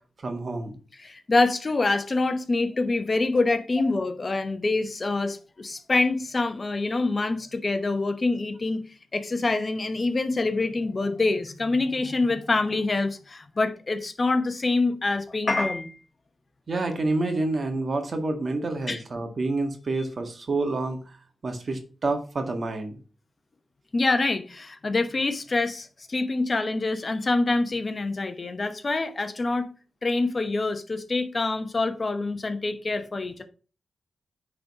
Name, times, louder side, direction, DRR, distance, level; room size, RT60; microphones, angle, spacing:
voice 1, 0.2-0.7 16.7-21.2 21.4-23.0, right 2 dB, 50° right, 1.7 m, -28 dB
voice 2, 1.0-8.8 9.1-15.9 18.9-19.0 23.9-29.7 30.0-33.4, left 3 dB, 40° left, 1.0 m, -26 dB
9.4 x 4.0 x 4.8 m
cardioid pair, 80°, 0 cm